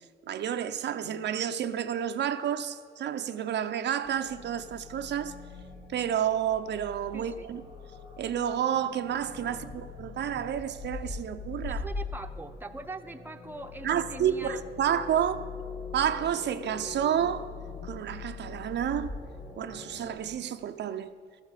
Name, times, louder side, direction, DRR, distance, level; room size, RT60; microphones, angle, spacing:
voice 1, 0.3-5.3 5.9-7.6 8.2-11.8 13.8-15.5 15.9-17.5 17.8-19.1 19.6-21.1, right 9 dB, 60° right, 0.6 m, -30 dB
sound 1, 4.0-20.2, left 4 dB, 85° left, 2.6 m, -42 dB
voice 2, 7.1-7.5 9.5-9.8 11.7-14.6, right 2 dB, 10° right, 0.7 m, -42 dB
13.5 x 8.1 x 6.7 m
cardioid pair, 90°, 20 cm